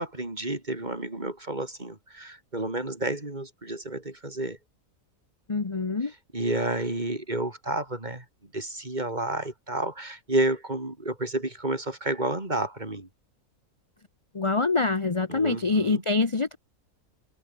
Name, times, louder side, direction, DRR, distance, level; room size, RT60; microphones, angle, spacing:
voice 1, 0.0-4.6 6.0-8.3 8.5-13.1 15.3-16.0, right 2 dB, 30° right, 3.8 m, -30 dB
voice 2, 5.5-6.1 14.3-16.6, left 3 dB, 25° left, 0.9 m, -25 dB
omnidirectional pair, 1.5 m